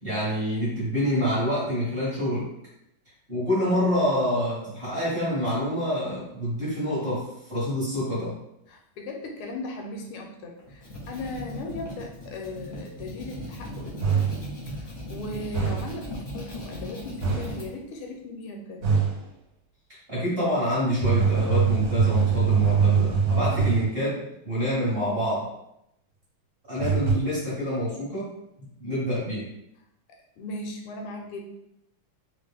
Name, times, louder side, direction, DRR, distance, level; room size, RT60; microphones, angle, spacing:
voice 1, 0.0-2.5 3.3-8.3 20.1-25.5 26.7-28.3 28.6-29.5, equal, 35° right, -9 dB, 1.0 m, -27 dB
voice 2, 8.7-18.9 30.4-31.4, left 2 dB, 85° left, 2 dB, 1.5 m, -38 dB
sound 1, 10.6-17.6, equal, 40° left, 0.7 m, -38 dB
sound 2, 14.0-14.4 15.5-16.0 17.2-17.6 18.8-19.2 21.0-23.9 26.8-27.1, right 6 dB, 65° right, 1.2 m, -23 dB
3.3 x 2.4 x 3.4 m, 0.82 s
omnidirectional pair, 2.3 m